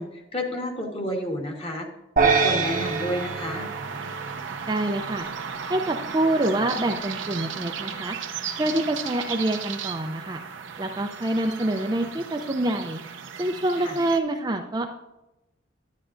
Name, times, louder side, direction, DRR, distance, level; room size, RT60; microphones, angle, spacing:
voice 1, 0.0-1.9 2.2-3.7 13.8-14.0, equal, 30° left, 1 dB, 1.4 m, -30 dB
sound 1, 2.2-4.6, right 5 dB, 45° right, 0.9 m, -24 dB
sound 2, 2.6-14.2, right 6 dB, 80° right, 0.7 m, -35 dB
voice 2, 4.7-5.3 5.7-8.2 8.6-10.4 10.8-13.0 13.4-14.9, right 1 dB, 20° right, 4 dB, 0.4 m, -26 dB
10.5 x 10.0 x 2.6 m, 0.94 s
head